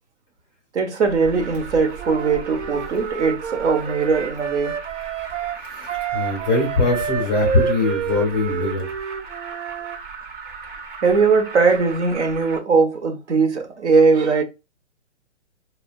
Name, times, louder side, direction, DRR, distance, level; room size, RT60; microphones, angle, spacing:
voice 1, 0.7-4.8 11.0-14.4, right 4 dB, 70° right, 0.9 m, -19 dB
Alarm, 1.0-12.6, right 5 dB, 45° right, 0.6 m, -37 dB
Wind instrument woodwind instrument, 2.0-10.0, right 7 dB, 85° right, 0.5 m, -29 dB
voice 2, 5.6-8.9, left 3 dB, 10° left, 0.5 m, -22 dB
2.7 x 2.1 x 2.6 m
hypercardioid pair, 160°, 36 cm